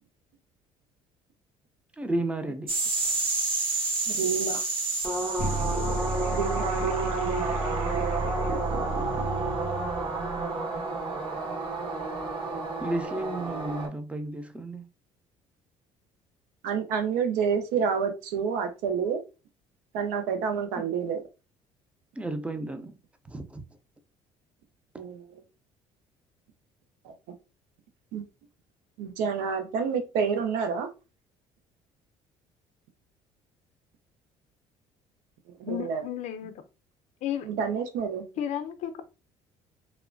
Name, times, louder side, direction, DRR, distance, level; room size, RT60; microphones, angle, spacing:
voice 1, 2.0-2.7 12.8-14.9 20.8-20.9 22.2-22.9 23.3-23.6, right 2 dB, 10° right, 0.5 m, -32 dB
sound 1, 2.7-13.9, right 3 dB, 45° right, 1.3 m, -30 dB
voice 2, 4.1-4.6 6.3-8.2 16.6-19.2 19.9-21.2 25.0-25.4 27.0-27.1 28.1-28.2 29.0-30.9 35.6-36.0 37.4-38.2, right 6 dB, 85° right, 0.6 m, -29 dB
sound 2, 5.4-10.4, right 2 dB, 65° right, 1.2 m, -32 dB
voice 3, 35.7-36.6 37.2-37.5 38.4-39.0, left 10 dB, 65° left, 0.5 m, -33 dB
3.0 x 2.1 x 2.5 m
supercardioid pair, 85°, 13 cm